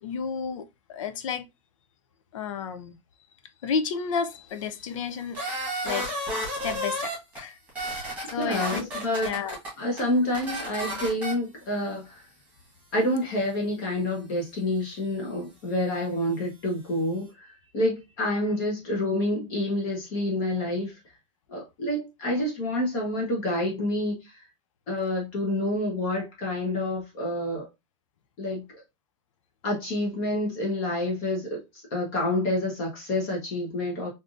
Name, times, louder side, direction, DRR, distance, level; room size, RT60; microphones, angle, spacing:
voice 1, 0.0-1.4 2.3-3.0 3.6-6.1 6.6-7.6 7.9-8.9 9.2-9.6, left 6 dB, 80° left, 0.5 m, -32 dB
sound 1, 5.3-7.4 7.7-9.7 10.0-10.1 10.3-11.3, equal, 10° right, 1.4 m, -31 dB
voice 2, 8.3-9.3 9.8-12.2 12.9-21.0 21.5-24.2 24.9-27.7 28.4-28.8 29.6-34.1, left 1 dB, 40° left, 1.1 m, -28 dB
3.4 x 2.6 x 2.5 m
supercardioid pair, 160°, 16 cm